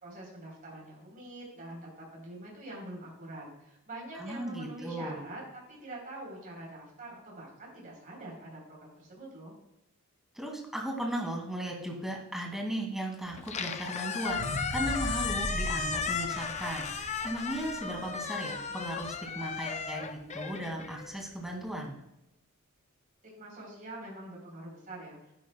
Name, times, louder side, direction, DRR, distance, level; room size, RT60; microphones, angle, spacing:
voice 1, 0.0-5.4 5.7-9.5 23.4-25.3, right 1 dB, 40° right, -2 dB, 3.6 m, -45 dB
voice 2, 4.1-5.2 10.4-22.0, right 1 dB, ahead, 0 dB, 2.0 m, -36 dB
Squeak, 13.3-21.6, left 5 dB, 30° left, 0.6 m, -35 dB
sound 1, 14.2-18.5 19.0-19.1, equal, 70° right, 3.4 m, -38 dB
11.5 x 10.0 x 2.2 m, 0.89 s
head